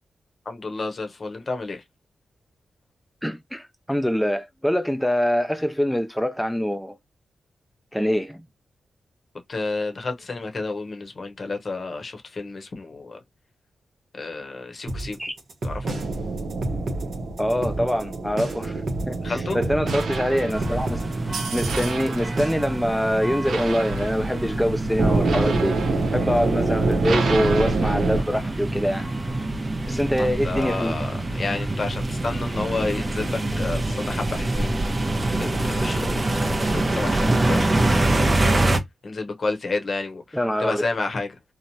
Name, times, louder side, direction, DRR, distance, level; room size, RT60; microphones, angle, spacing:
voice 1, 0.5-1.8 9.5-13.2 14.1-15.2 15.6-15.9 19.2-19.6 30.2-34.7 35.4-36.4 36.7-38.3 39.0-41.3, left 3 dB, 50° left, 0.8 m, -30 dB
voice 2, 3.2-7.0 7.9-8.4 15.2-15.3 17.4-21.0 21.5-25.8 26.1-29.1 29.9-31.0 40.3-40.8, equal, ahead, 0.3 m, -24 dB
sound 1, 14.9-22.8, right 2 dB, 65° right, 0.9 m, -31 dB
sound 2, 15.8-28.2, right 3 dB, 85° right, 0.6 m, -27 dB
sound 3, 20.5-38.8, right 2 dB, 30° right, 0.7 m, -25 dB
3.0 x 2.0 x 2.6 m
cardioid pair, 75°, 0 cm